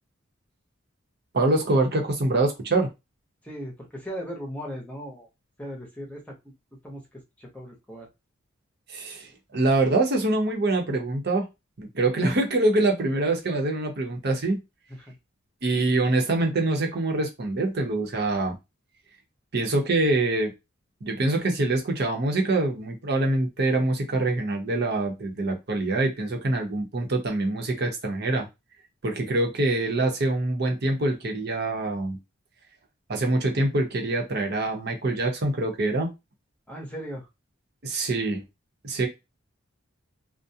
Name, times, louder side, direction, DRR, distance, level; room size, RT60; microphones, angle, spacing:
voice 1, 1.3-2.9 8.9-11.4 11.8-14.6 15.6-18.5 19.5-20.5 21.0-28.5 29.0-32.2 33.1-36.1 37.8-38.4 38.8-39.1, right 2 dB, 55° right, 2 dB, 0.8 m, -25 dB
voice 2, 3.4-5.3 5.6-6.4 6.8-7.0 7.4-8.1 15.0-15.1 36.7-37.3, equal, 10° left, -1 dB, 0.7 m, -37 dB
2.4 x 2.1 x 2.7 m, 0.23 s
head